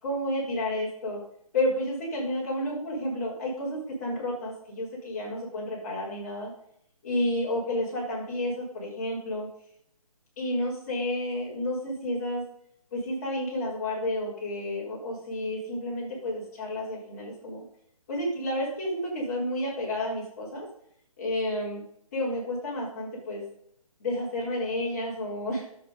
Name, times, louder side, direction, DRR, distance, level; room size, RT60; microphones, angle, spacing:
voice 1, 0.0-1.2 1.5-6.5 7.0-9.5 10.4-12.4 12.9-17.6 18.1-20.7 21.2-21.8 22.1-23.4 24.0-25.7, left 1 dB, 25° left, -5 dB, 4.3 m, -31 dB
9.9 x 7.6 x 5.4 m, 0.71 s
hypercardioid pair, 175°, 19 cm